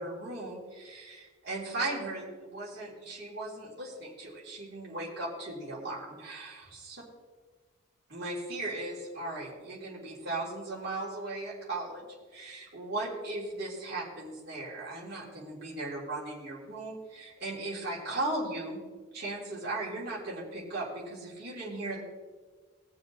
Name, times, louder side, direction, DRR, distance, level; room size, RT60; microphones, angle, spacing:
voice 1, 0.0-7.0 8.1-12.0 12.3-18.8 19.1-22.0, right 2 dB, 50° right, -6 dB, 3.3 m, -37 dB
21.5 x 7.2 x 3.2 m, 1.4 s
head